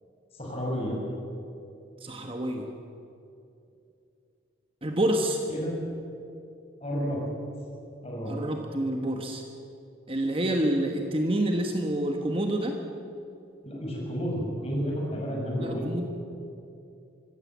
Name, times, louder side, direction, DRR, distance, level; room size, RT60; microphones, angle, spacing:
voice 1, 0.3-1.0 5.5-5.8 6.8-7.2 8.0-8.3 13.6-15.9, equal, 30° left, -2 dB, 5.9 m, -31 dB
voice 2, 2.0-2.7 4.8-5.4 8.3-9.4 10.1-12.8 15.6-16.0, right 1 dB, 25° right, 3 dB, 1.3 m, -28 dB
24.0 x 16.0 x 7.4 m, 2.6 s
head